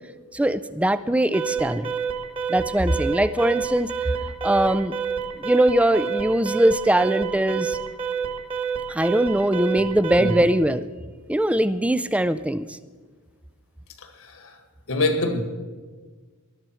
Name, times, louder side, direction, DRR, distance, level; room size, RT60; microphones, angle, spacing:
voice 1, 0.3-1.9 2.5-3.9 4.4-4.9 5.4-7.8 8.9-10.9 11.3-12.8, right 1 dB, 5° right, 0.4 m, -21 dB
Alarm, 1.3-10.5, right 6 dB, 25° right, 1.7 m, -28 dB
voice 2, 14.0-14.6 14.9-15.4, left 2 dB, 65° left, 1.6 m, -25 dB
19.5 x 12.0 x 4.5 m
head